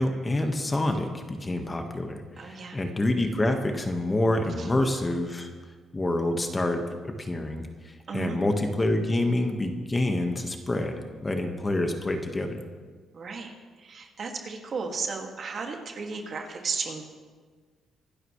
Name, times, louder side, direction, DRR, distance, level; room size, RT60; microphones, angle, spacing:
voice 1, 0.0-5.5 5.9-12.6, left 1 dB, 20° left, 4 dB, 1.6 m, -27 dB
voice 2, 2.4-2.8 4.6-4.7 8.1-8.4 13.1-13.5 13.8-17.1, right 4 dB, 50° right, 2 dB, 2.3 m, -34 dB
25.0 x 12.0 x 3.3 m, 1.5 s
cardioid pair, 90°, 0 cm